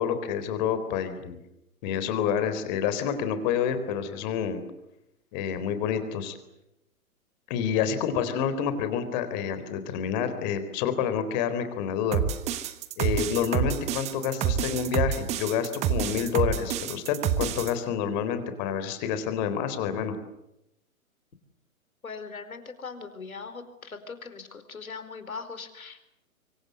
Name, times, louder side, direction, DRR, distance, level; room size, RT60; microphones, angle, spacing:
voice 1, 0.0-1.4 1.8-4.6 5.3-6.4 7.5-12.2 13.0-20.2, left 8 dB, 30° left, 10 dB, 3.9 m, -28 dB
sound 1, 12.1-17.7, right 9 dB, 15° right, 1.2 m, -28 dB
voice 2, 22.0-26.1, left 5 dB, 70° left, 10 dB, 4.7 m, -40 dB
25.5 x 24.5 x 8.1 m, 0.87 s
figure-of-eight pair, 130°, 43 cm